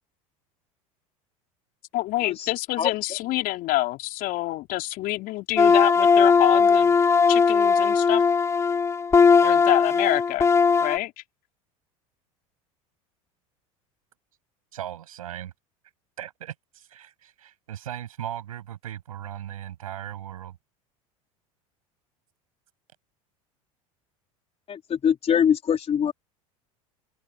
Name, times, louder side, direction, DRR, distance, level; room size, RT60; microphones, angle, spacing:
voice 1, 1.9-7.0 7.3-8.2 9.4-10.5 10.8-11.1, left 17 dB, 55° left, 3.9 m, -27 dB
sound 1, 5.6-11.0, left 5 dB, 15° left, 0.4 m, -18 dB
voice 2, 14.7-15.5 16.2-20.6, right 11 dB, 85° right, 6.8 m, -37 dB
voice 3, 24.7-26.1, left 8 dB, 35° left, 3.9 m, -22 dB
hypercardioid pair, 85°, 18 cm